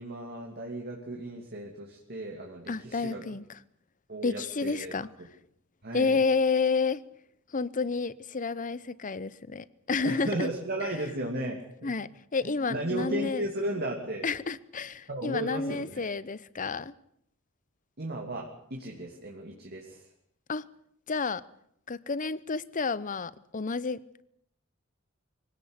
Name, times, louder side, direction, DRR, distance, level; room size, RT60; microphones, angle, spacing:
voice 1, 0.0-3.2 4.1-4.9 5.8-6.2 10.0-11.9 12.7-14.3 15.1-16.1 18.0-20.1, right 1 dB, 50° right, 2.9 m, -35 dB
voice 2, 2.7-3.4 4.2-5.1 5.9-7.0 7.5-10.5 11.8-13.5 14.2-16.9 20.5-20.6 21.1-21.4 21.9-24.0, left 4 dB, 40° left, 0.8 m, -30 dB
24.5 x 17.0 x 8.2 m
head